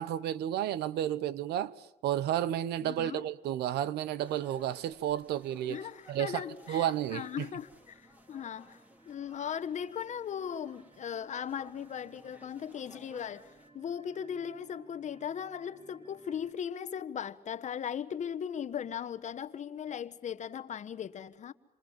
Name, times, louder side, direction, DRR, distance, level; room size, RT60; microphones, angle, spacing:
voice 1, 0.0-5.8 6.1-7.5, right 11 dB, 75° right, 1.0 m, -32 dB
voice 2, 2.8-3.2 5.7-8.8 9.1-21.5, left 8 dB, 45° left, 1.3 m, -38 dB
sound 1, 3.3-3.8 4.2-16.5, right 2 dB, 25° right, 3.6 m, -62 dB
sound 2, 4.2-13.7, equal, 10° right, 3.2 m, -59 dB
27.0 x 27.0 x 7.4 m
cardioid pair, 110°, 17 cm